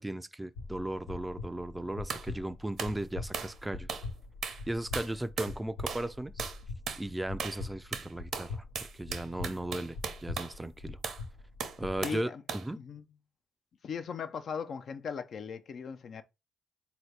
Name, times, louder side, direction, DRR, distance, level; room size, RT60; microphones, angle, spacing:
voice 1, 0.0-3.9 4.7-6.5 7.0-11.0 11.8-12.8, right 1 dB, 15° right, 0.4 m, -36 dB
sound 1, 0.5-12.0, left 3 dB, 85° left, 0.8 m, -43 dB
sound 2, 2.1-2.3 2.8-3.0 3.3-3.6 3.9-4.1 4.4-4.6 4.9-5.6 5.9-6.1 6.4-6.6 6.9-7.0 7.4-7.6 7.9-10.6 11.0-11.2 11.6-12.2 12.5-12.7, right 6 dB, 65° right, 0.7 m, -37 dB
voice 2, 12.0-12.4 12.7-13.0 13.8-16.2, left 6 dB, 60° left, 0.4 m, -38 dB
3.8 x 2.8 x 3.2 m
hypercardioid pair, 50°, 0 cm